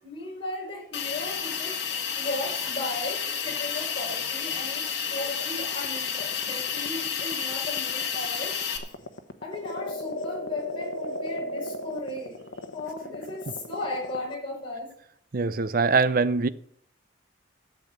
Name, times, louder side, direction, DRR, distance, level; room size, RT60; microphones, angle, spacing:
voice 1, 0.0-1.8 2.2-8.6 9.4-12.4 12.7-14.9, left 2 dB, 30° left, 5.2 m, -36 dB
Hiss, 0.9-8.8, left 7 dB, 60° left, 2.0 m, -31 dB
sound 1, 5.4-14.3, left 1 dB, 80° left, 1.2 m, -36 dB
voice 2, 15.3-16.5, right 4 dB, 50° right, 0.5 m, -23 dB
12.0 x 7.8 x 6.8 m
head